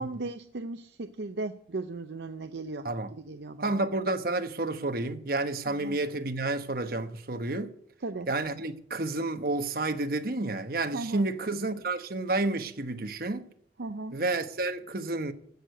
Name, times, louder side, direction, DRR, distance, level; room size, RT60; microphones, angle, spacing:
voice 1, 0.0-3.8 5.7-6.0 8.0-8.3 10.9-11.2 13.8-14.2, right 3 dB, 70° right, 0.6 m, -37 dB
voice 2, 3.6-7.7 8.3-13.4 14.1-15.3, right 2 dB, 55° right, 1.1 m, -30 dB
15.0 x 6.6 x 8.1 m
head